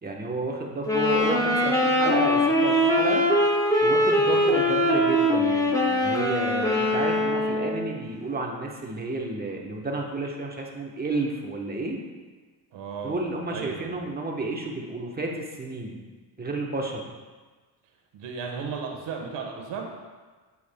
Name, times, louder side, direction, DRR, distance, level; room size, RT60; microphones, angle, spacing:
voice 1, 0.0-3.3 3.8-12.0 13.0-16.0 16.4-17.0, right 2 dB, 20° right, -1 dB, 1.1 m, -31 dB
sound 1, 0.8-7.9, left 1 dB, 10° left, 0.9 m, -22 dB
voice 2, 4.2-4.6 12.7-13.9 18.1-19.8, right 5 dB, 75° right, 1 dB, 1.4 m, -35 dB
8.2 x 8.2 x 2.3 m, 1.4 s
cardioid pair, 105°, 44 cm